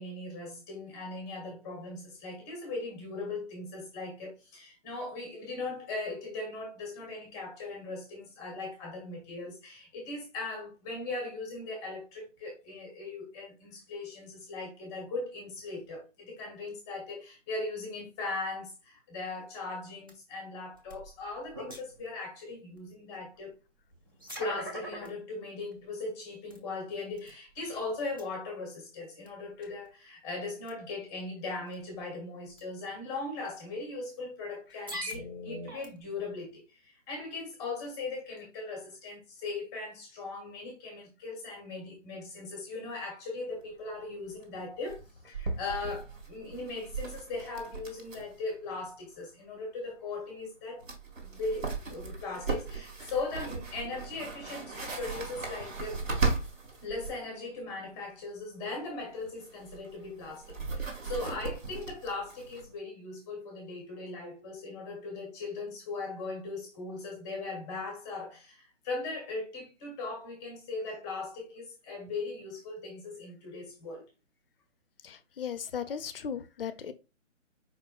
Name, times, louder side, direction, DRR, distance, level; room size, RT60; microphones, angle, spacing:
voice 1, 0.0-23.5 24.4-45.0 45.3-50.8 51.2-56.0 56.8-74.1, left 3 dB, 10° left, 0.8 m, -39 dB
sound 1, 20.1-20.2 20.7-22.1 22.8-22.9 23.9-25.1 25.7-25.8 26.5-26.6 27.1-27.8 28.1-28.2 29.3-29.4 29.6-29.9 30.7-30.9 31.7-31.9 32.5-32.6 33.6-33.7 34.7-36.2, equal, 20° right, 0.4 m, -41 dB
sound 2, 43.6-43.7 43.8-43.9 44.3-44.4 44.9-48.4 48.7-48.8 50.4-50.5 50.8-57.2 59.0-62.7, right 4 dB, 75° right, 1.8 m, -37 dB
voice 2, 75.0-76.9, left 7 dB, 45° left, 0.6 m, -37 dB
4.9 x 4.3 x 2.3 m
figure-of-eight pair, 150°, 39 cm